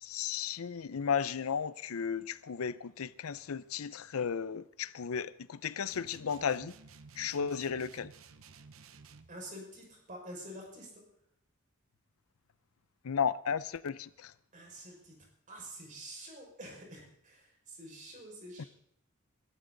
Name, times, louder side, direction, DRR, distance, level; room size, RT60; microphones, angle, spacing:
voice 1, 0.0-6.7 7.2-8.1 13.0-14.3 18.6-18.7, left 7 dB, 90° left, 0.5 m, -34 dB
sound 1, 5.9-9.4, right 4 dB, 75° right, 0.9 m, -54 dB
voice 2, 9.3-11.0 14.5-15.2 15.5-18.7, right 1 dB, 40° right, 5.5 m, -48 dB
21.5 x 12.5 x 3.9 m
head